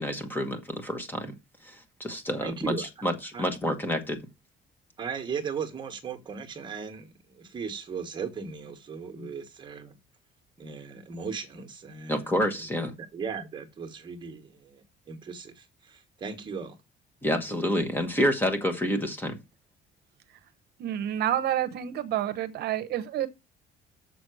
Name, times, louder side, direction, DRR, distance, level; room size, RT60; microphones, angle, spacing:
voice 1, 0.0-1.3 1.6-4.2 9.2-9.3 12.1-12.9 17.2-19.4, equal, 10° left, 1.2 m, -28 dB
voice 2, 2.4-2.9 3.3-3.5 5.0-9.9 10.6-12.2 12.6-12.7 13.1-16.8, right 6 dB, 25° right, 1.4 m, -37 dB
voice 3, 20.8-23.3, right 11 dB, 60° right, 0.9 m, -29 dB
6.9 x 6.0 x 6.3 m
cardioid pair, 170°, 19 cm